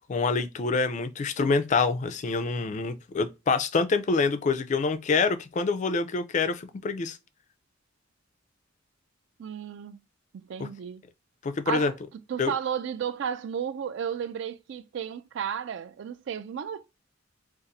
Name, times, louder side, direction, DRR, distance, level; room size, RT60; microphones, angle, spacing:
voice 1, 0.1-7.2 10.6-10.7 11.4-11.9 12.4-12.5, left 4 dB, 35° left, 0.3 m, -26 dB
voice 2, 9.4-10.0 10.3-11.0 11.7-11.9 12.3-16.9, right 8 dB, 60° right, 0.3 m, -33 dB
2.6 x 2.4 x 4.0 m
head